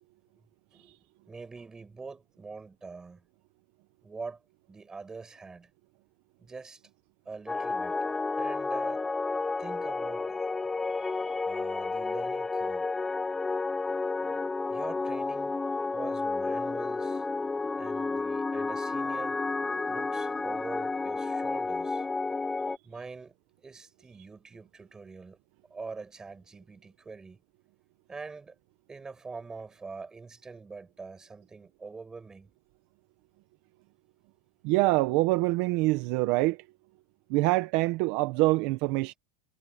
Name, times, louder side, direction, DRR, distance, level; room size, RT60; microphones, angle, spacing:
voice 1, 0.7-3.2 4.0-4.4 4.7-5.7 6.4-6.8 7.2-8.0 8.4-9.0 9.6-10.4 10.9-12.9 14.7-15.6 15.9-17.2 17.8-19.4 19.9-22.0 22.8-25.4 25.7-27.4 28.1-28.5 28.9-32.5, right 4 dB, 10° right, 7.9 m, -44 dB
sound 1, 7.5-22.8, left 3 dB, 10° left, 0.5 m, -31 dB
voice 2, 34.6-36.6 37.3-39.1, right 21 dB, 45° right, 1.1 m, -25 dB
supercardioid pair, 165°, 6 cm